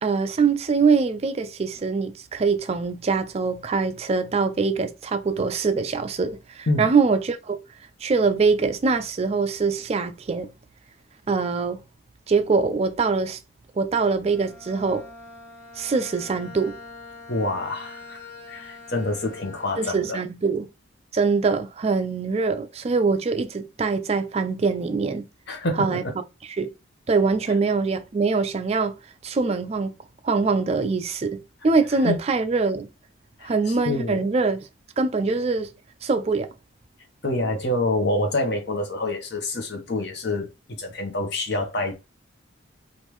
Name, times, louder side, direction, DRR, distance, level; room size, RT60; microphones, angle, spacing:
voice 1, 0.0-7.6 8.0-10.5 11.3-11.8 12.3-13.4 13.8-15.1 15.8-16.8 19.8-20.7 21.1-25.2 25.8-26.0 26.6-26.7 27.1-29.0 29.2-30.0 30.2-32.9 33.4-34.7 35.0-35.7 36.0-36.5, right 4 dB, 30° right, 0.3 m, -23 dB
Bowed string instrument, 14.2-20.3, left 3 dB, 70° left, 1.4 m, -44 dB
voice 2, 17.3-18.2 18.5-20.2 25.5-26.0 32.0-32.2 33.4-34.2 37.2-40.5 40.8-41.9, left 2 dB, 55° left, 0.9 m, -27 dB
3.5 x 2.5 x 3.0 m
head